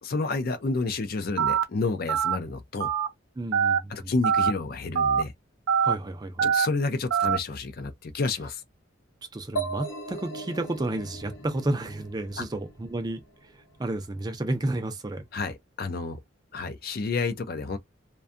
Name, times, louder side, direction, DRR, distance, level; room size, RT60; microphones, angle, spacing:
voice 1, 0.0-2.9 3.9-5.3 6.4-8.6 12.4-12.5 15.3-16.2 16.5-17.8, left 3 dB, 50° left, 0.4 m, -30 dB
Telephone, 1.4-1.6 2.1-2.3 2.8-3.1 3.5-3.8 4.2-4.5 4.9-5.2 5.7-5.9 6.4-6.7 7.1-7.4, right 7 dB, 75° right, 0.5 m, -23 dB
voice 2, 3.4-4.1 5.8-6.5 9.3-15.2, right 2 dB, 20° right, 0.4 m, -32 dB
sound 1, 9.6-13.2, right 3 dB, 65° left, 0.9 m, -37 dB
2.6 x 2.2 x 2.4 m
head